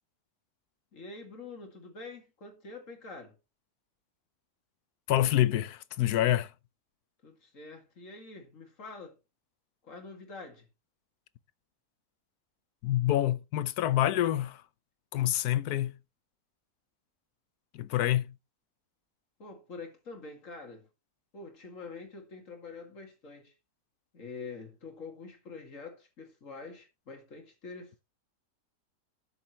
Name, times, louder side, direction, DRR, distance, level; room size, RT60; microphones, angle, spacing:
voice 1, 0.9-3.4 7.2-9.2 9.8-10.7 19.4-20.9 21.3-23.5 24.1-28.0, left 4 dB, 55° left, 2.5 m, -46 dB
voice 2, 5.1-6.5 12.8-14.6 15.1-15.9 17.7-18.3, left 13 dB, 90° left, 1.2 m, -27 dB
12.5 x 6.9 x 3.0 m
omnidirectional pair, 1.6 m